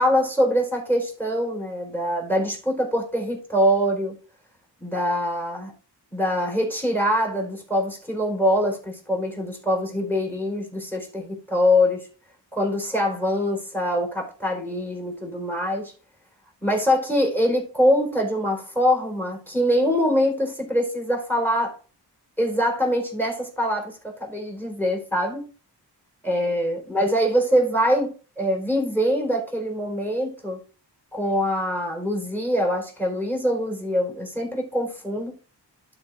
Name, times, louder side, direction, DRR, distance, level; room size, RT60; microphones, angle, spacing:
voice 1, 0.0-4.1 4.8-5.7 6.1-12.1 12.5-15.9 16.6-21.8 22.4-25.5 26.2-30.6 31.1-35.3, equal, 5° left, 4.1 m, -24 dB
11.5 x 4.9 x 3.4 m
wide cardioid pair, 95°, 42 cm